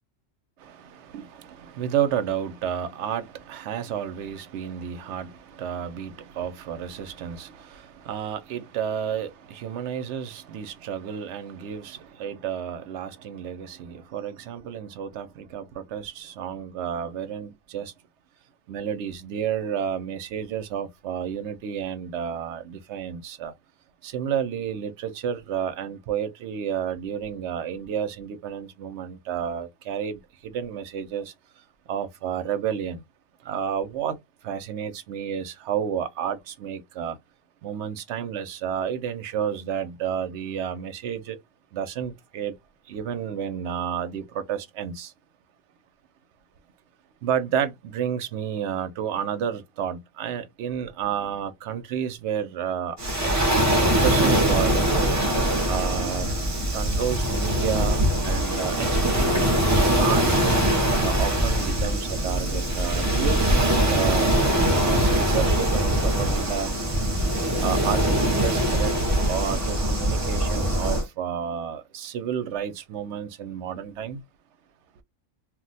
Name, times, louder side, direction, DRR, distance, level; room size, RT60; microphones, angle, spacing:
voice 1, 0.6-17.9 18.7-23.5 24.0-33.0 33.4-37.2 37.6-41.4 41.7-42.6 42.9-45.1 47.2-53.3 53.8-55.1 55.6-56.3 56.7-59.4 60.0-60.3 60.9-64.3 64.8-66.8 67.6-69.0 69.3-74.2, right 8 dB, 65° right, 0.8 m, -31 dB
Waves surf, 53.0-71.0, right 1 dB, 20° right, 0.4 m, -22 dB
2.4 x 2.1 x 3.9 m
omnidirectional pair, 1.3 m